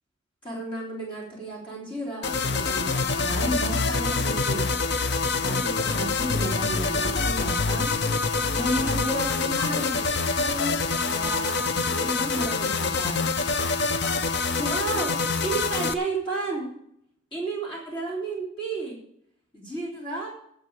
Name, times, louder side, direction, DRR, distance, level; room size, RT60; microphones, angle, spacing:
voice 1, 0.4-4.7 5.3-10.0 10.4-10.8 11.0-13.2 14.2-15.1 15.4-16.7 17.3-18.9 19.5-20.3, right 2 dB, 25° left, -4 dB, 3.4 m, -32 dB
sound 1, 2.2-15.9, left 4 dB, 55° left, 0.6 m, -26 dB
10.5 x 6.8 x 8.6 m, 0.71 s
head